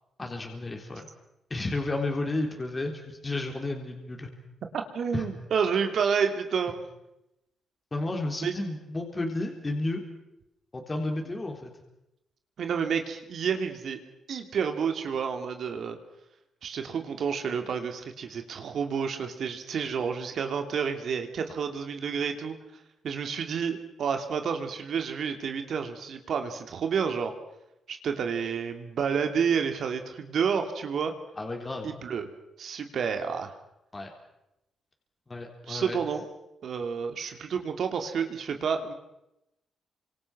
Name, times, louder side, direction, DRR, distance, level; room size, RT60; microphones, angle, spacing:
voice 1, 0.2-1.1 1.5-4.3 5.1-5.3 7.9-10.0 10.7-11.7 31.4-31.9 33.9-34.1 35.3-36.0, left 2 dB, 25° left, 2 dB, 3.8 m, -32 dB
voice 2, 4.9-6.7 8.4-8.5 12.6-14.0 14.3-16.0 16.6-22.6 23.0-27.3 27.9-31.1 31.8-32.3 32.6-33.5 35.7-36.2 36.6-38.9, right 6 dB, 65° right, 6 dB, 2.9 m, -29 dB
28.5 x 25.5 x 6.2 m, 0.89 s
cardioid pair, 110°, 0 cm